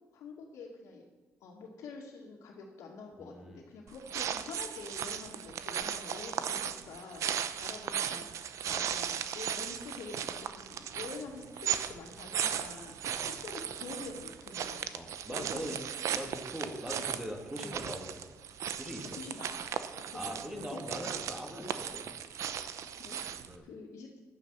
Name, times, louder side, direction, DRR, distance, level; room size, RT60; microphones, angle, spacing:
voice 1, 0.1-1.0 1.4-7.2 7.6-12.9 13.2-14.8 15.3-15.9 19.0-19.6 20.0-21.0 22.9-24.2, left 4 dB, 85° left, -6 dB, 2.4 m, -47 dB
voice 2, 3.2-3.6 8.7-8.9 13.1-13.3 14.9-15.8 16.1-18.2 18.7-19.2 20.1-22.2 23.5-23.7, equal, 10° right, 2 dB, 2.7 m, -41 dB
sound 1, 3.9-23.6, right 8 dB, 75° right, 0.8 m, -37 dB
11.5 x 9.3 x 5.9 m, 1.3 s
cardioid pair, 80°, 5 cm